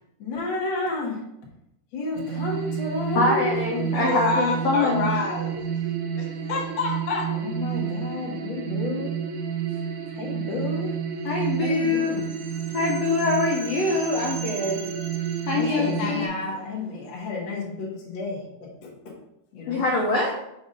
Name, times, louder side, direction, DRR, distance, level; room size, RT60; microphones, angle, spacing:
voice 1, 0.2-1.2 1.9-4.1 7.3-9.1 10.1-10.9 11.6-12.3 15.5-19.1 19.5-19.8, left 3 dB, 60° left, -2 dB, 1.3 m, -31 dB
sound 1, 2.1-16.3, right 8 dB, 80° right, 2.1 m, -30 dB
voice 2, 3.1-5.1 11.2-12.2 12.7-14.8 15.5-16.3 19.7-20.3, left 3 dB, 75° left, -2 dB, 1.6 m, -24 dB
voice 3, 3.9-5.6 6.2-7.2 15.6-16.5, left 3 dB, 45° left, -3 dB, 1.3 m, -28 dB
5.3 x 3.5 x 5.1 m, 0.84 s
omnidirectional pair, 3.7 m